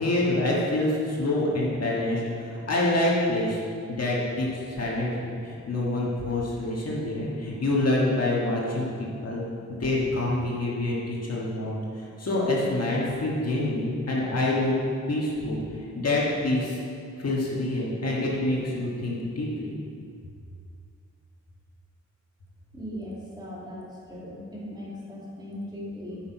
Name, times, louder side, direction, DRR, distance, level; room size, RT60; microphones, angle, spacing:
voice 1, 0.0-3.6 3.9-8.9 9.2-9.4 9.7-14.7 15.1-16.8 17.2-19.7, left 2 dB, 55° left, -5 dB, 1.7 m, -26 dB
voice 2, 22.7-26.2, left 1 dB, 15° right, -7 dB, 2.0 m, -38 dB
9.2 x 6.0 x 5.4 m, 2.4 s
wide cardioid pair, 180°, 30 cm